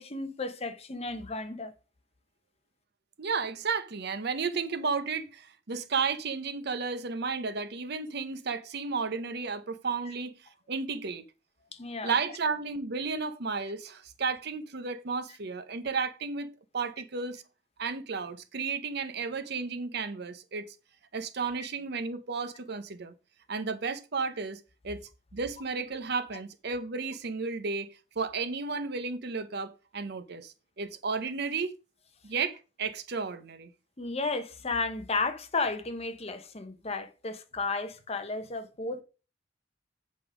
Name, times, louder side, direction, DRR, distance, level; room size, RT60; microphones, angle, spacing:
voice 1, 0.0-1.7 11.7-12.1 34.0-39.0, left 3 dB, 35° left, 0.9 m, -33 dB
voice 2, 3.2-10.4 10.7-11.2 12.0-17.4 17.8-20.7 21.1-23.1 23.5-25.0 25.3-31.7 32.2-33.7, right 4 dB, 60° right, 0.8 m, -33 dB
8.1 x 5.2 x 5.0 m
head